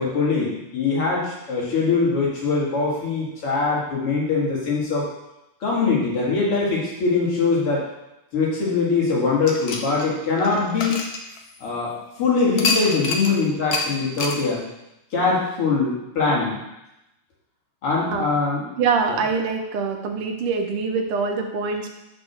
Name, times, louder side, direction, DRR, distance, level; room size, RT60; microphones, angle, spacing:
voice 1, 0.0-5.1 5.6-7.9 8.3-11.0 11.6-14.6 15.1-16.6 17.8-18.7 19.1-19.2, left 4 dB, 85° left, -5 dB, 3.1 m, -22 dB
sound 1, 9.4-11.8 12.6-13.3 13.7-13.9 14.2-14.4, left 3 dB, 60° left, 1.1 m, -26 dB
voice 2, 18.8-21.9, right 5 dB, 90° right, 3 dB, 1.9 m, -24 dB
6.4 x 5.3 x 6.2 m, 0.91 s
omnidirectional pair, 2.4 m